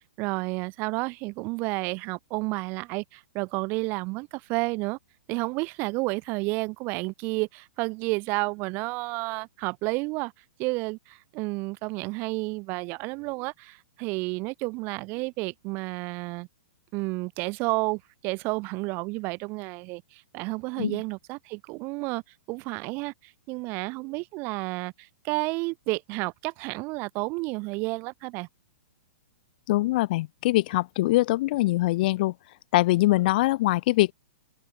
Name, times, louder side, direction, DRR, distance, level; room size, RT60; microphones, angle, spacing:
voice 1, 0.2-5.0 5.3-10.3 10.6-16.5 16.9-22.2 22.5-28.5, right 26 dB, 30° right, 4.5 m, -31 dB
voice 2, 29.7-32.3 32.7-34.1, left 18 dB, 40° left, 4.8 m, -23 dB
open air
hypercardioid pair, 160°, 7 cm